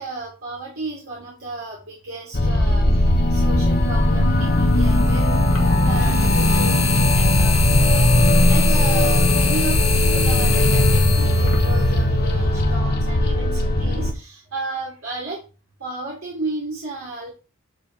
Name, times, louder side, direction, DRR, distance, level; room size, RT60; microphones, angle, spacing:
voice 1, 0.0-2.8 3.3-8.1 8.5-14.3 14.5-15.4 15.8-17.3, right 2 dB, 85° right, -5 dB, 2.9 m, -33 dB
sound 1, 2.3-14.1, left 1 dB, 50° left, 1.1 m, -18 dB
sound 2, 3.2-3.3 4.7-12.6, left 4 dB, 75° left, 1.8 m, -25 dB
9.4 x 4.6 x 3.4 m, 0.32 s
head